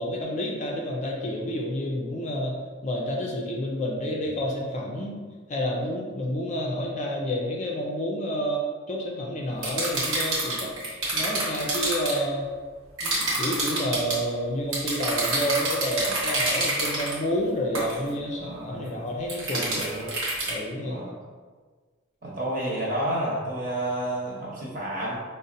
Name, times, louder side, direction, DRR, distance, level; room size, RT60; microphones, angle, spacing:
voice 1, 0.0-2.5 2.8-5.2 5.5-8.6 8.9-10.7 11.1-12.5 13.0-19.8 20.5-21.0, equal, 35° left, -2 dB, 0.4 m, -29 dB
sound 1, 9.6-12.2 13.0-14.2 14.7-17.2 17.7-18.0 19.3-20.5, right 2 dB, 80° right, 1.1 m, -27 dB
voice 2, 18.4-19.0 19.5-20.1 20.8-21.1 22.2-25.2, right 1 dB, 40° right, -6 dB, 1.0 m, -30 dB
5.1 x 2.1 x 2.6 m, 1.5 s
head